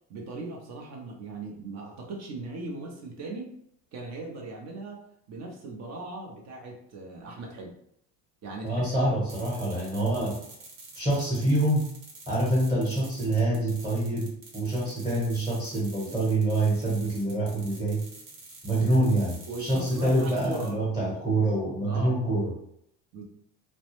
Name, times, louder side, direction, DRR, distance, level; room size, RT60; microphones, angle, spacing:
voice 1, 0.1-3.5 3.9-7.7 8.4-8.9 19.5-21.1 21.8-22.1 23.1-23.2, right 2 dB, 45° right, 1 dB, 0.7 m, -39 dB
voice 2, 8.6-10.4 10.9-11.9 12.3-18.0 18.6-22.6, right 1 dB, 10° right, -6 dB, 1.0 m, -26 dB
sound 1, 9.3-20.7, right 3 dB, 70° right, 1.0 m, -47 dB
2.2 x 2.1 x 2.9 m, 0.72 s
cardioid pair, 115°, 36 cm